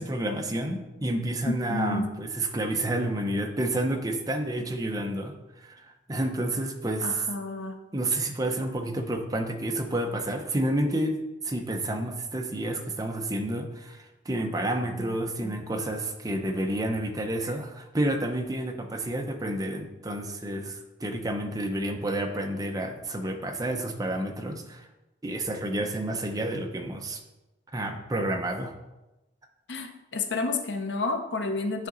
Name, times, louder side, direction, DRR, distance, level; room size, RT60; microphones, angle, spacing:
voice 1, 0.0-5.4 5.6-7.2 7.9-11.2 11.4-24.9 25.2-27.2 27.7-28.7, right 1 dB, 20° right, 3 dB, 0.7 m, -30 dB
voice 2, 1.5-2.1 7.0-7.8 29.7-31.9, left 3 dB, 65° left, 6 dB, 0.7 m, -30 dB
9.7 x 3.8 x 3.9 m, 1.0 s
head